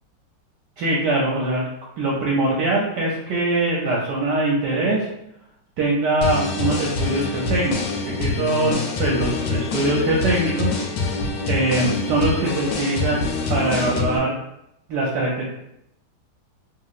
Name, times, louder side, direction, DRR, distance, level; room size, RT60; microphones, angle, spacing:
voice 1, 0.8-1.6 2.0-5.1 5.8-10.7 11.0-11.2 11.4-14.3 14.9-15.5, right 2 dB, 70° right, -4 dB, 1.1 m, -22 dB
sound 1, 6.2-14.2, left 3 dB, 90° left, 1.4 m, -25 dB
3.0 x 2.8 x 2.4 m, 0.79 s
omnidirectional pair, 2.2 m